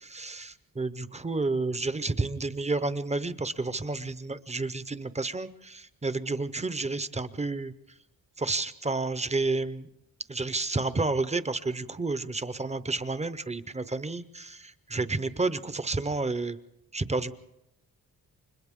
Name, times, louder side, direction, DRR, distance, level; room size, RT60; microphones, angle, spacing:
voice 1, 0.0-7.7 8.4-9.9 10.3-16.6 16.9-17.3, right 3 dB, 20° right, 13 dB, 0.7 m, -30 dB
29.5 x 25.5 x 3.7 m, 0.84 s
wide cardioid pair, 165°, 36 cm